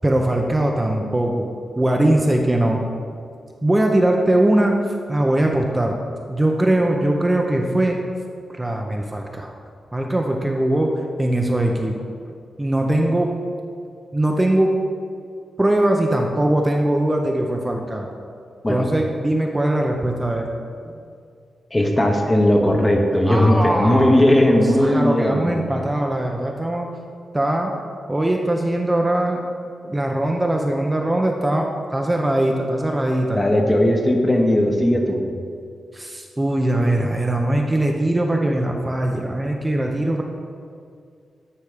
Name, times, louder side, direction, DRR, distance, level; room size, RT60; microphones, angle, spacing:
voice 1, 0.0-1.5 1.8-2.8 3.6-4.7 5.1-6.0 6.3-8.0 8.5-9.5 9.9-10.9 11.2-12.0 12.6-13.3 14.1-14.7 15.6-18.1 18.7-20.5 23.2-24.2 24.8-26.9 27.3-27.7 28.1-29.4 29.8-33.4 35.9-40.2, right 1 dB, 15° right, 1 dB, 0.6 m, -21 dB
voice 2, 21.7-25.6 33.3-35.2, left 1 dB, 20° left, 2 dB, 0.9 m, -17 dB
9.6 x 3.3 x 5.0 m, 2.3 s
cardioid pair, 75°, 0 cm